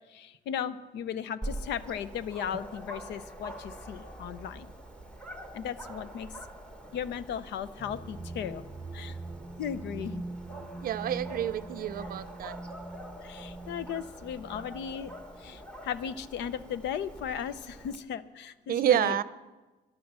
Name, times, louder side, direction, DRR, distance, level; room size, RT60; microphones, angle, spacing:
voice 1, 0.1-4.7 5.5-6.3 6.9-8.6 8.9-9.2 9.6-10.2 13.2-15.1 15.4-19.2, left 8 dB, 85° left, 15 dB, 0.7 m, -36 dB
Dog, 1.4-18.0, right 1 dB, 5° left, 1.2 m, -45 dB
sound 1, 7.8-15.5, right 2 dB, 15° right, 0.7 m, -43 dB
voice 2, 10.7-12.6 18.7-19.2, right 10 dB, 55° right, 16 dB, 0.6 m, -28 dB
13.5 x 11.0 x 6.3 m, 1.2 s
cardioid pair, 135°, 18 cm